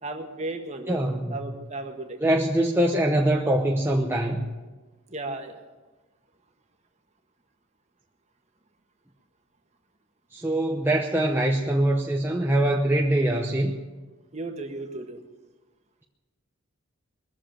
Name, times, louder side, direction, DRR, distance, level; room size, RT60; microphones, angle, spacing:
voice 1, 0.0-2.2 5.1-5.6 14.3-15.2, right 2 dB, 30° right, 4 dB, 1.5 m, -35 dB
voice 2, 0.9-1.5 2.2-4.5 10.3-13.8, right 1 dB, 10° right, -1 dB, 0.8 m, -23 dB
21.5 x 7.4 x 9.0 m, 1.2 s
head